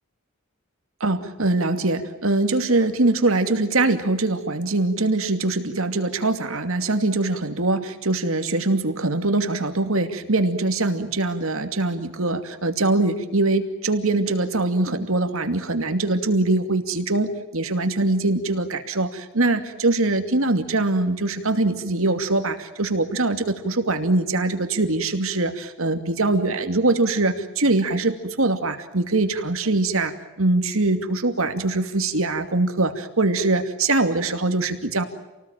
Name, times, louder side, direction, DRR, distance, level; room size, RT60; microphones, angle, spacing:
voice 1, 1.0-35.0, right 2 dB, 70° right, 7 dB, 2.6 m, -23 dB
28.5 x 19.0 x 9.1 m, 1.1 s
head